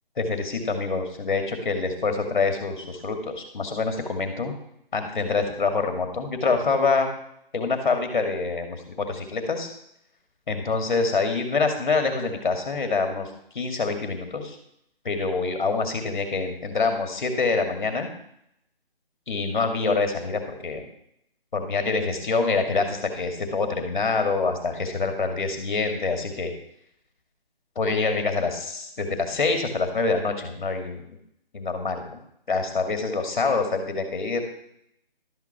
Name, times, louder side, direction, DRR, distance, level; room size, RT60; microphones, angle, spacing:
voice 1, 0.2-4.5 4.9-7.1 7.5-9.7 10.5-13.3 13.5-14.6 15.0-18.1 19.3-20.8 21.5-26.5 27.8-31.0 31.5-32.2 32.5-34.4, left 4 dB, 55° left, 5 dB, 2.3 m, -26 dB
12.5 x 6.0 x 5.9 m, 0.74 s
figure-of-eight pair, 150°, 29 cm